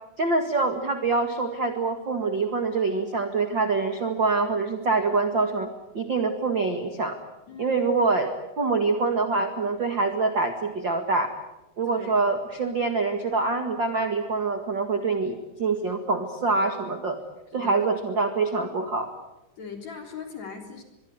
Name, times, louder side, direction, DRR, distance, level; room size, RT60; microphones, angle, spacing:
voice 1, 0.2-7.2 7.6-8.3 8.6-11.3 11.8-17.2 17.5-19.1, right 3 dB, 45° right, 6 dB, 1.6 m, -25 dB
voice 2, 7.5-7.8 11.8-12.1 17.5-17.8 19.6-20.8, left 6 dB, 40° left, 4 dB, 4.6 m, -39 dB
24.0 x 23.0 x 9.6 m, 0.97 s
omnidirectional pair, 5.1 m